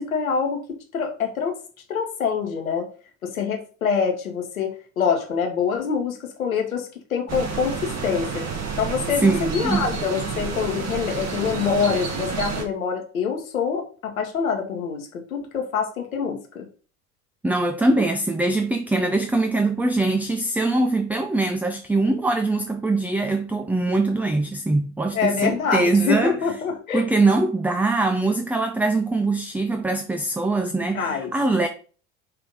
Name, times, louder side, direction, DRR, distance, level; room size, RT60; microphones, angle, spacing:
voice 1, 0.0-1.6 1.9-2.9 3.2-8.5 8.8-16.6 25.1-27.1 30.9-31.3, left 6 dB, 85° left, 1.2 m, -25 dB
sound 1, 7.3-12.6, right 5 dB, 40° right, 1.9 m, -29 dB
voice 2, 9.2-9.8 17.4-26.4 26.9-31.7, right 2 dB, 5° right, 0.4 m, -22 dB
5.6 x 3.4 x 5.3 m
hypercardioid pair, 70°, 40 cm